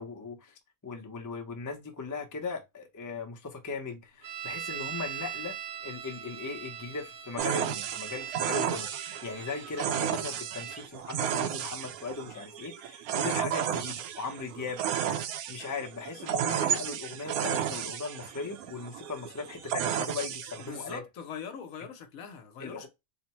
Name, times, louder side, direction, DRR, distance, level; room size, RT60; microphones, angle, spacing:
voice 1, 0.0-5.6 5.8-14.8 15.5-21.0 22.6-22.9, left 4 dB, 30° left, 0.3 m, -38 dB
sound 1, 4.2-10.8, right 9 dB, 55° right, 0.7 m, -41 dB
sound 2, 7.4-21.0, right 9 dB, 75° right, 1.0 m, -33 dB
voice 2, 20.6-22.9, left 7 dB, 70° left, 1.1 m, -42 dB
3.9 x 2.1 x 4.2 m
omnidirectional pair, 1.6 m